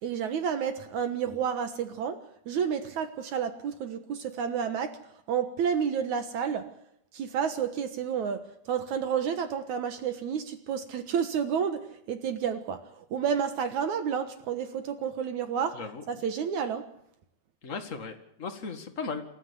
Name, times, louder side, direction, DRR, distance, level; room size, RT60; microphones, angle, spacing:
voice 1, 0.0-2.2 2.5-4.9 5.3-6.7 7.1-15.8 16.1-16.8, right 7 dB, 65° right, 9 dB, 2.1 m, -30 dB
voice 2, 15.7-16.0 17.6-19.2, left 4 dB, 45° left, 6 dB, 0.9 m, -36 dB
28.0 x 14.0 x 8.5 m, 0.74 s
omnidirectional pair, 4.8 m